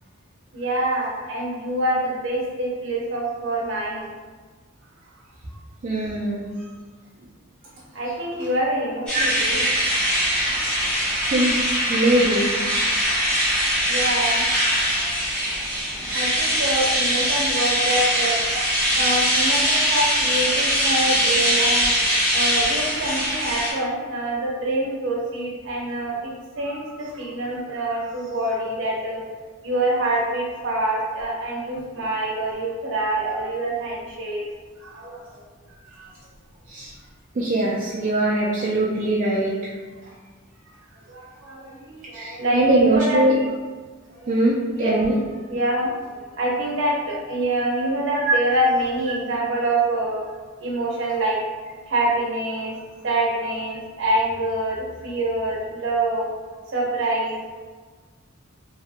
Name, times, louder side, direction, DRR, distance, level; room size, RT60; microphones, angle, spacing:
voice 1, 0.5-4.1 7.9-9.7 13.9-14.5 16.1-18.4 18.9-22.0 22.3-26.3 26.6-29.2 29.6-34.4 34.8-35.4 36.0-36.1 41.1-43.2 44.1-44.3 44.7-45.0 45.5-50.2 50.6-51.4 51.9-52.8 53.0-56.3 56.7-57.4, right 1 dB, 65° right, -3 dB, 0.7 m, -25 dB
voice 2, 5.8-6.7 9.1-9.3 11.2-11.6 11.9-12.5 13.0-13.2 36.7-36.9 37.3-39.7 42.1-43.3 44.3-45.1 48.2-48.3, right 1 dB, 40° right, -6 dB, 0.3 m, -21 dB
sound 1, 9.1-23.7, equal, 5° left, 0.8 m, -22 dB
2.7 x 2.5 x 2.4 m, 1.4 s
head